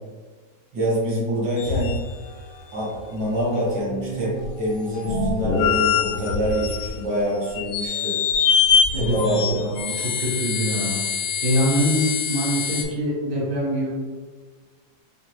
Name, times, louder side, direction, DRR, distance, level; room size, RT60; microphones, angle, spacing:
voice 1, 0.7-2.0 2.7-8.2 8.9-9.7, equal, 75° right, -7 dB, 1.9 m, -25 dB
sound 1, 1.6-2.5 2.9-3.0 3.4-7.2 7.5-12.8, left 6 dB, 80° left, 0.8 m, -24 dB
voice 2, 8.9-11.0 11.4-13.9, equal, 55° right, -7 dB, 1.6 m, -24 dB
5.6 x 2.0 x 3.0 m, 1.4 s
omnidirectional pair, 2.1 m